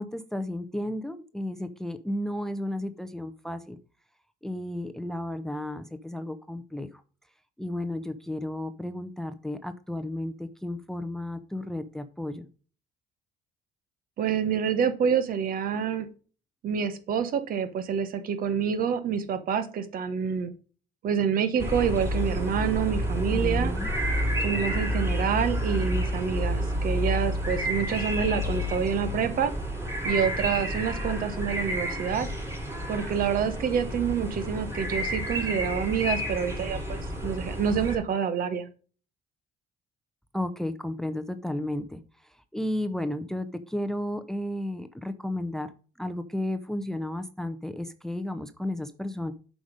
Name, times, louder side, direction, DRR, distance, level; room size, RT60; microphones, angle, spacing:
voice 1, 0.0-3.8 4.4-6.9 7.6-12.5 23.3-23.9 40.3-42.0 42.5-45.7 46.0-49.3, left 1 dB, 5° left, 11 dB, 0.6 m, -33 dB
voice 2, 14.2-16.1 16.6-20.5 21.0-23.7 24.4-29.5 30.0-32.3 32.9-38.7, right 7 dB, 55° right, 10 dB, 1.2 m, -27 dB
sound 1, 21.6-38.0, equal, 15° right, 3.9 m, -30 dB
7.9 x 5.1 x 5.1 m, 0.39 s
cardioid pair, 110°, 17 cm